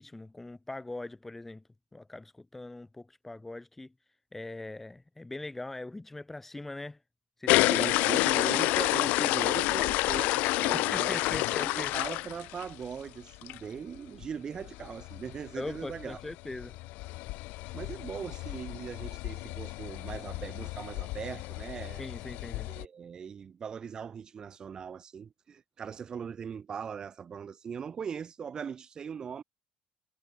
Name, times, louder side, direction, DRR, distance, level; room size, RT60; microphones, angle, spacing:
voice 1, 0.0-1.6 1.9-3.9 4.3-7.0 7.4-7.9 10.7-11.9 15.6-16.8 22.0-22.7, left 2 dB, 10° left, 1.5 m, -41 dB
sound 1, 7.5-12.9 13.3-13.6 13.9-14.0 14.2-14.3 14.6-22.8, left 21 dB, 65° left, 0.4 m, -30 dB
voice 2, 7.7-16.2 17.7-22.1 22.7-29.4, right 7 dB, 25° right, 2.5 m, -40 dB
cardioid pair, 165°, 3 cm